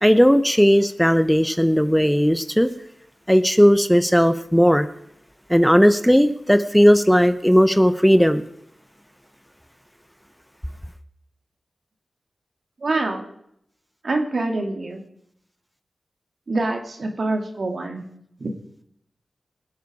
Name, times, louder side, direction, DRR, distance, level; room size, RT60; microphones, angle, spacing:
voice 1, 0.0-2.7 3.3-4.9 5.5-8.4, equal, ahead, 11 dB, 0.8 m, -16 dB
voice 2, 12.8-13.2 14.0-15.0 16.5-18.0 18.4-18.5, right 2 dB, 65° right, 3 dB, 2.3 m, -25 dB
20.5 x 8.1 x 5.0 m, 0.73 s
cardioid pair, 40°, 0 cm